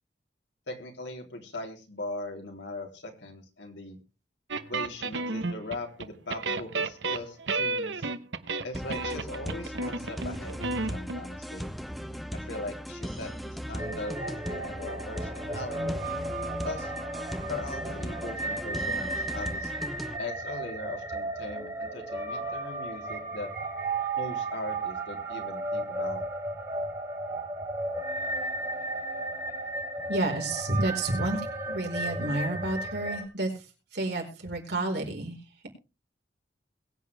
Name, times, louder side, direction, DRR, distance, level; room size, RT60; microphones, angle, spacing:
voice 1, 0.7-4.0 4.7-8.1 8.6-11.7 12.3-16.0 16.6-16.9 17.5-19.7 20.2-23.5 24.2-26.2, left 2 dB, 90° left, 2 dB, 3.6 m, -39 dB
sound 1, 4.5-6.1 6.3-11.2, right 3 dB, 90° right, 1.0 m, -32 dB
sound 2, 8.7-20.2, equal, ahead, 1.1 m, -38 dB
sound 3, 13.8-33.2, right 2 dB, 15° right, 6.4 m, -34 dB
voice 2, 30.1-31.4 31.7-33.6 33.9-35.4, right 2 dB, 65° right, 1 dB, 4.9 m, -30 dB
22.0 x 8.4 x 3.5 m, 0.31 s
head